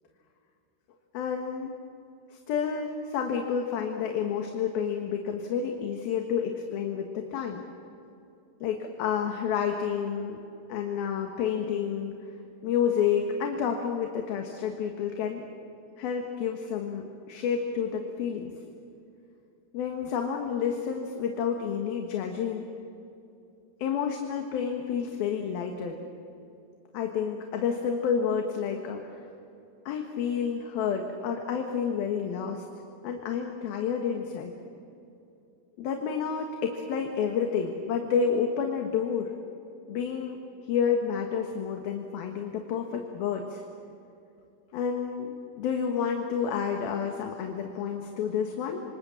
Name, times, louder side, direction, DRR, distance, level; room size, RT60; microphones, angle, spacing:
voice 1, 1.1-1.7 2.3-7.6 8.6-10.4 10.7-12.2 12.6-15.4 16.0-18.5 19.7-22.7 23.8-26.0 26.9-29.2 29.9-32.6 33.0-34.5 35.8-39.3 39.9-40.4 40.7-43.6 44.7-48.8, left 7 dB, 70° left, 3 dB, 3.3 m, -29 dB
27.0 x 26.0 x 7.3 m, 2.7 s
omnidirectional pair, 4.7 m